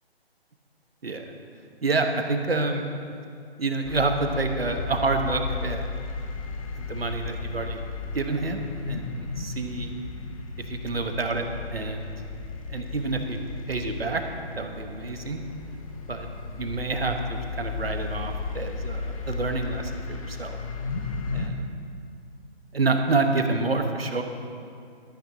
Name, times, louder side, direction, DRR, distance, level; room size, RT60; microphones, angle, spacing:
voice 1, 1.8-2.8 3.6-5.8 6.9-7.8 8.1-9.9 10.6-12.1 12.7-13.4 13.7-14.2 14.6-15.4 16.1-16.3 16.6-20.6 21.3-21.6 22.7-24.2, right 3 dB, 70° right, 5 dB, 1.3 m, -28 dB
sound 1, 3.8-21.5, left 4 dB, 35° left, 1.0 m, -35 dB
14.0 x 13.0 x 2.8 m, 2.4 s
figure-of-eight pair, 140°, 32 cm